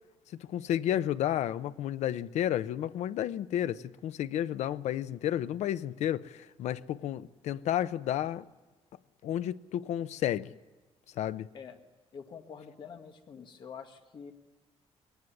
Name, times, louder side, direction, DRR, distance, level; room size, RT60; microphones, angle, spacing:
voice 1, 0.5-8.4 9.2-10.5 11.2-11.5, left 11 dB, 85° left, 0.7 m, -31 dB
voice 2, 12.1-14.3, left 6 dB, 45° left, 1.8 m, -46 dB
21.5 x 19.0 x 9.8 m
cardioid pair, 170°, 11 cm